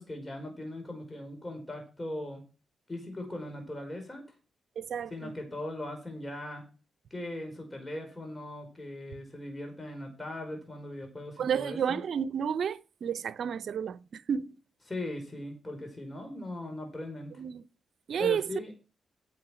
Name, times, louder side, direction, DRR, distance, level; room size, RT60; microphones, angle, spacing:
voice 1, 0.0-2.4 2.9-4.2 5.1-6.6 7.1-12.0 14.9-17.3 18.2-18.7, left 1 dB, 25° left, 5.1 m, -39 dB
voice 2, 4.8-5.3 11.4-14.5 17.4-17.6 18.1-18.5, right 8 dB, 70° right, 0.7 m, -31 dB
8.8 x 8.5 x 5.9 m
supercardioid pair, 55°, 0 cm